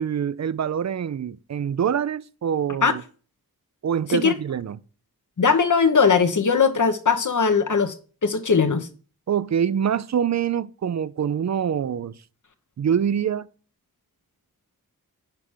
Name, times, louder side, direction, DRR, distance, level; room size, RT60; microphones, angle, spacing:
voice 1, 0.0-3.0 3.8-4.8 9.3-12.1 12.8-13.5, right 8 dB, 50° right, 0.5 m, -25 dB
voice 2, 5.4-7.9 8.2-8.9, left 5 dB, 55° left, 1.0 m, -19 dB
5.9 x 4.8 x 6.2 m
cardioid pair, 55°, 37 cm